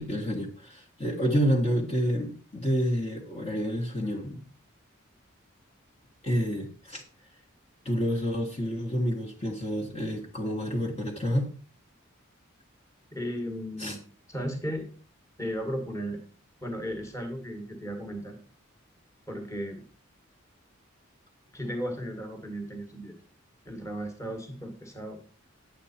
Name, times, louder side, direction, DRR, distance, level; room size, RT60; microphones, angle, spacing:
voice 1, 0.0-4.5 6.2-7.0 7.8-11.5 13.8-13.9, equal, 30° left, -2 dB, 1.5 m, -29 dB
voice 2, 13.1-14.0 14.3-14.9 15.4-16.2 16.6-18.4 19.3-19.8 21.5-23.1 23.6-25.2, equal, 15° left, 4 dB, 1.7 m, -35 dB
9.4 x 8.1 x 4.3 m, 0.40 s
head